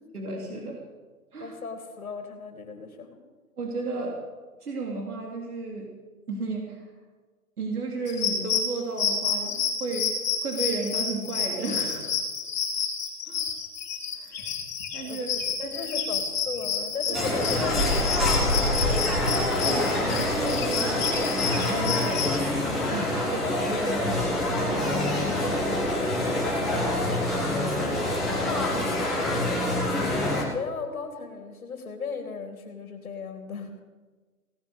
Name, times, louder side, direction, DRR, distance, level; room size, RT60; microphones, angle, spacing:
voice 1, 0.1-0.9 1.3-1.6 3.6-4.2 4.6-5.9 6.3-6.9 7.6-12.2 13.3-13.5 14.1-14.6 14.9-15.3 15.6-15.9 17.1-17.6 19.6-22.4 22.8-26.8 27.4-29.6 29.9-30.4, right 2 dB, 75° right, 0 dB, 3.3 m, -34 dB
voice 2, 1.4-3.2 15.1-19.1 30.3-33.7, left 5 dB, 60° left, 6 dB, 2.5 m, -36 dB
sound 1, 8.1-22.4, left 6 dB, 30° left, 2.8 m, -30 dB
sound 2, 17.1-30.4, left 1 dB, ahead, 1.1 m, -26 dB
17.0 x 10.5 x 6.5 m, 1.3 s
hypercardioid pair, 160°, 45 cm